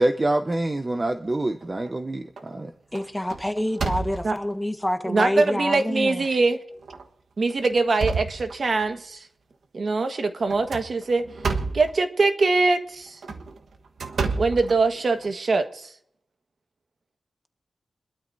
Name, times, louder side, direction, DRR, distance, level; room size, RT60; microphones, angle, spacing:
voice 1, 0.0-2.7, right 1 dB, 30° right, 1.0 m, -25 dB
sound 1, 1.3-1.9 2.4-2.6 2.9-4.5 5.2-5.3 5.8-5.9 6.8-7.0 7.5-8.9 10.5-11.9 13.1-15.3, right 4 dB, 85° right, 1.4 m, -30 dB
voice 2, 2.9-6.2, left 1 dB, 10° left, 1.5 m, -27 dB
voice 3, 5.0-6.6 7.4-9.3 9.7-11.3 11.7-13.2 14.4-15.9, right 3 dB, 60° right, 1.5 m, -23 dB
25.5 x 12.5 x 2.7 m
wide cardioid pair, 75°, 0 cm